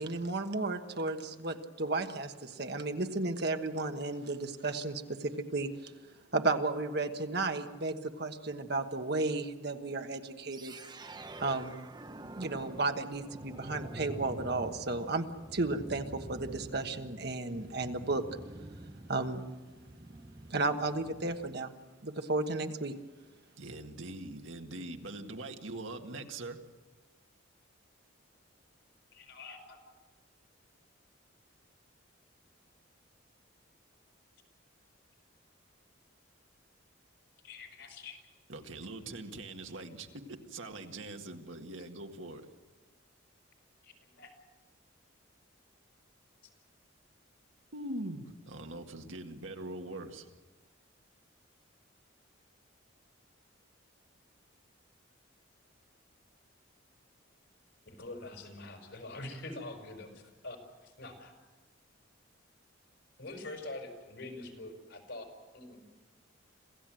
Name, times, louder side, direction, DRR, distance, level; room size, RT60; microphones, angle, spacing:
voice 1, 0.0-5.9 6.3-10.7 11.4-11.9 12.4-15.3 15.5-18.2 19.1-19.5 20.5-21.7 22.0-23.0, right 3 dB, 55° right, 6 dB, 1.3 m, -33 dB
sound 1, 10.5-21.6, right 1 dB, 20° right, 0.8 m, -47 dB
voice 2, 23.6-26.6 38.5-42.5 47.7-50.3, right 2 dB, 75° right, 4 dB, 1.9 m, -42 dB
voice 3, 29.1-29.8 37.4-38.2 43.8-44.3 57.9-60.6 60.8-61.3 63.2-65.2 65.5-65.8, left 2 dB, 65° left, 4 dB, 5.3 m, -45 dB
27.0 x 16.0 x 7.7 m, 1.3 s
head